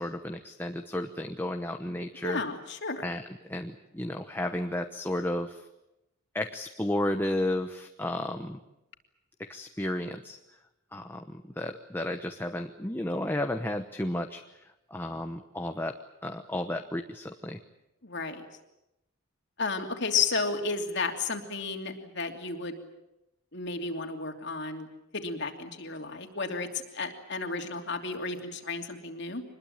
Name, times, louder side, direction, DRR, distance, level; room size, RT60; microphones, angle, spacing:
voice 1, 0.0-2.4 3.0-3.2 3.5-5.7 6.3-8.6 9.4-10.4 10.9-16.0 16.2-17.6, left 1 dB, 10° left, 5 dB, 1.0 m, -33 dB
voice 2, 2.2-3.0 18.0-18.5 19.6-22.8 23.5-24.9 25.1-29.4, left 4 dB, 55° left, 4 dB, 3.0 m, -32 dB
25.5 x 21.0 x 8.9 m, 0.91 s
head